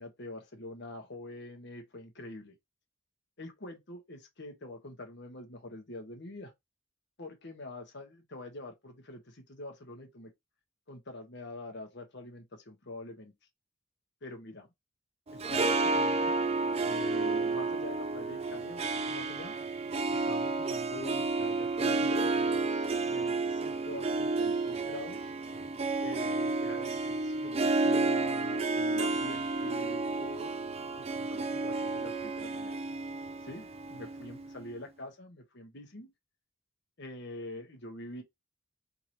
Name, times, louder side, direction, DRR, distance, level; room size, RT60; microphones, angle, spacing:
voice 1, 0.0-2.6 3.4-6.5 7.2-10.3 10.9-13.3 14.2-14.7 15.3-16.4 16.8-19.5 20.1-25.3 26.0-30.5 30.9-32.8 33.4-36.1 37.0-38.2, left 1 dB, 55° left, 1.2 m, -45 dB
Harp, 15.3-34.6, right 3 dB, 30° right, 0.4 m, -31 dB
3.7 x 3.1 x 2.8 m
head